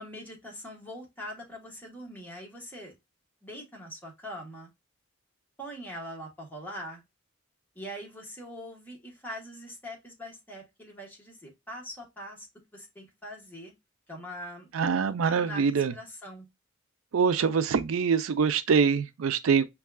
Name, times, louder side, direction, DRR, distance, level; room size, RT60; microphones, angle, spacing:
voice 1, 0.0-2.9 3.4-4.7 5.6-7.0 7.7-12.5 12.7-13.7 14.1-14.7 15.2-16.5, equal, 10° left, 1.1 m, -42 dB
voice 2, 14.7-15.9 17.1-19.7, right 6 dB, 85° right, 0.4 m, -24 dB
5.3 x 2.3 x 2.2 m
head